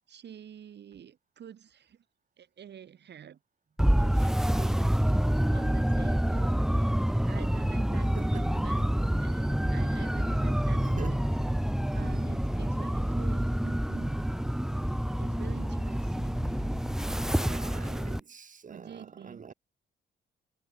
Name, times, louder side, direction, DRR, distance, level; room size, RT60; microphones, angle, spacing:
voice 1, 0.0-2.0 2.4-3.4 4.0-4.9 5.2-8.9 9.2-11.2 11.9-14.2 15.1-16.4 18.7-19.5, right 9 dB, 60° right, 5.0 m, -48 dB
sound 1, 3.8-18.2, equal, ahead, 1.1 m, -27 dB
sound 2, 8.0-17.4, left 5 dB, 35° left, 5.9 m, -47 dB
voice 2, 8.2-8.9 10.7-11.2 17.3-19.5, right 6 dB, 40° right, 5.4 m, -44 dB
cardioid pair, 90°, 20 cm